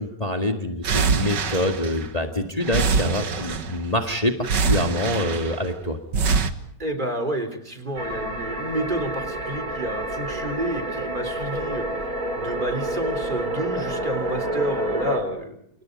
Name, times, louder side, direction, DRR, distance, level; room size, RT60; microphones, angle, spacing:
voice 1, 0.0-6.0, left 1 dB, 20° left, 4 dB, 2.0 m, -26 dB
sound 1, 0.8-2.3 2.6-3.9 4.4-5.7 6.1-6.5, right 5 dB, 85° right, 2.2 m, -24 dB
voice 2, 6.8-11.9 12.4-15.6, right 1 dB, 25° right, 6 dB, 3.7 m, -29 dB
sound 2, 8.0-15.2, right 1 dB, 55° right, 5.0 m, -29 dB
29.0 x 27.5 x 5.3 m, 0.71 s
omnidirectional pair, 1.8 m